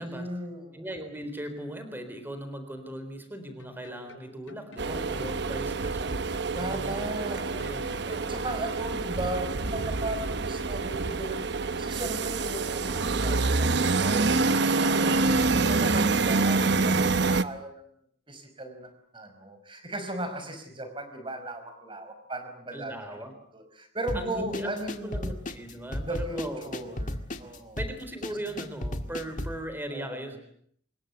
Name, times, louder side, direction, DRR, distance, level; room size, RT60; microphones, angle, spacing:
voice 1, 0.0-0.8 4.8-5.4 6.5-7.5 8.2-11.4 11.8-14.4 14.8-17.8 18.3-22.9 23.5-25.3 25.9-27.8 29.9-30.4, right 1 dB, 25° right, 8 dB, 5.3 m, -37 dB
voice 2, 0.7-8.5 22.7-23.3 24.1-24.7 25.0-26.8 27.8-30.4, right 1 dB, 10° right, 8 dB, 3.9 m, -39 dB
sound 1, 2.8-2.9 3.6-5.0 5.8-6.9 7.6-8.7, left 1 dB, 85° left, 5.1 m, -50 dB
sound 2, 4.8-17.4, right 3 dB, 60° right, 1.0 m, -26 dB
sound 3, 24.1-29.6, left 1 dB, 45° left, 2.0 m, -35 dB
26.0 x 21.5 x 8.2 m, 0.65 s
head